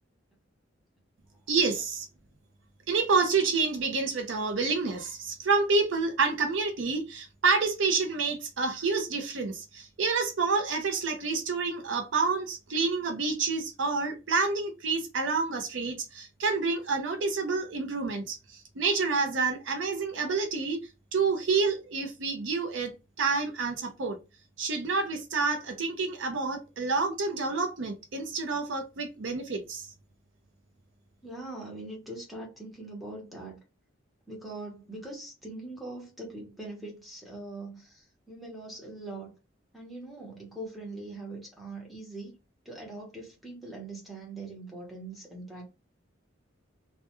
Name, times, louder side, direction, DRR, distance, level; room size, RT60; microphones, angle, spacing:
voice 1, 1.5-2.1 2.9-20.8 21.1-24.2 24.6-29.9, right 4 dB, 65° right, 0.5 m, -28 dB
voice 2, 31.2-33.6 34.3-39.3 39.7-42.3 42.6-45.6, right 2 dB, ahead, 0.8 m, -42 dB
2.2 x 2.2 x 2.9 m
head